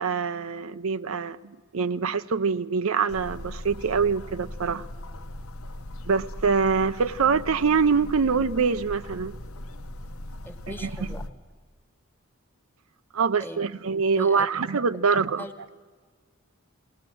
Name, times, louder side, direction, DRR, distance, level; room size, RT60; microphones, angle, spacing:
voice 1, 0.0-4.9 6.1-9.4 10.8-10.9 13.1-15.4, right 5 dB, 70° right, 12 dB, 0.6 m, -24 dB
sound 1, 3.1-11.3, left 1 dB, 75° left, 0.9 m, -39 dB
voice 2, 10.4-11.2 13.4-13.6 14.2-14.5 15.4-15.5, left 1 dB, 10° left, 7 dB, 1.1 m, -38 dB
21.0 x 18.0 x 7.7 m, 1.5 s
head